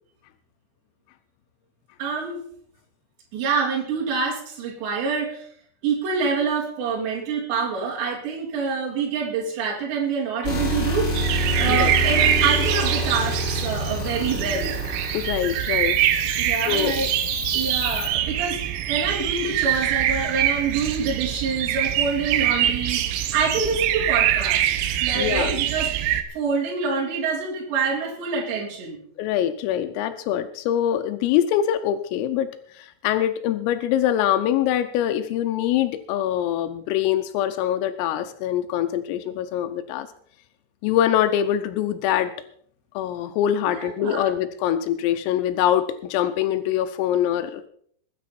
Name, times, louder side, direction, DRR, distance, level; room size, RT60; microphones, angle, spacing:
voice 1, 2.0-2.4 3.3-5.5 5.8-14.7 16.4-17.1 17.5-18.6 18.9-23.0 23.3-24.6 25.0-25.9 26.3-29.0 43.8-44.3, right 5 dB, 60° right, -3 dB, 5.2 m, -26 dB
sound 1, 10.4-18.1, left 1 dB, 25° left, 4.3 m, -28 dB
sound 2, 11.2-26.2, right 11 dB, 85° right, 3.8 m, -24 dB
voice 2, 15.1-16.0 16.7-17.0 23.6-23.7 25.1-25.5 29.2-32.5 32.8-40.1 40.8-42.3 43.0-47.6, left 11 dB, 85° left, 9 dB, 3.4 m, -24 dB
21.0 x 9.8 x 4.3 m, 0.63 s
omnidirectional pair, 5.9 m